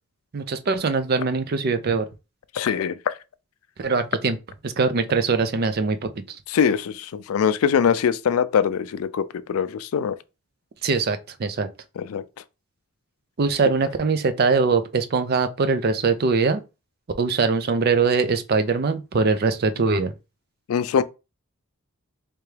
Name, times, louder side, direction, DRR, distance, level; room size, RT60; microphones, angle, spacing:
voice 1, 0.3-2.1 3.8-4.4 4.6-6.4 10.8-11.7 13.4-16.6 17.2-20.1, right 4 dB, 45° right, 0.4 m, -22 dB
voice 2, 2.5-3.1 6.5-10.2 12.0-12.2 20.7-21.0, left 7 dB, 75° left, 0.3 m, -22 dB
3.4 x 2.9 x 3.2 m
head